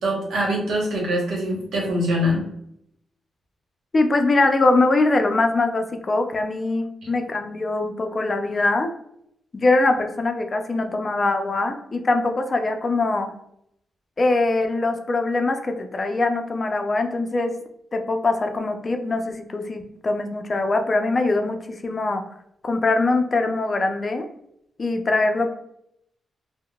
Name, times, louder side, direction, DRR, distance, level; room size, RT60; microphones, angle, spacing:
voice 1, 0.0-2.5, equal, 85° right, -1 dB, 1.0 m, -23 dB
voice 2, 3.9-8.9 9.5-13.3 14.2-17.5 17.9-22.2 22.6-24.3 24.8-25.5, left 2 dB, 40° left, 5 dB, 0.4 m, -22 dB
3.7 x 2.0 x 2.3 m, 0.75 s
cardioid pair, 85°, 0 cm